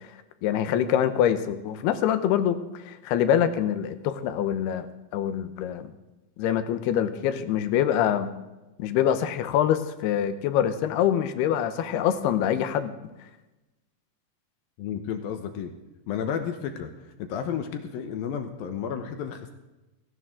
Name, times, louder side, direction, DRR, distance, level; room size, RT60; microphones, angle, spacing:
voice 1, 0.4-4.9 5.1-5.9 6.4-8.3 8.8-12.9, left 10 dB, 90° left, 10 dB, 3.0 m, -25 dB
voice 2, 14.8-15.7 16.1-19.5, left 8 dB, 75° left, 7 dB, 2.7 m, -32 dB
17.5 x 17.5 x 3.8 m, 1.0 s
omnidirectional pair, 4.5 m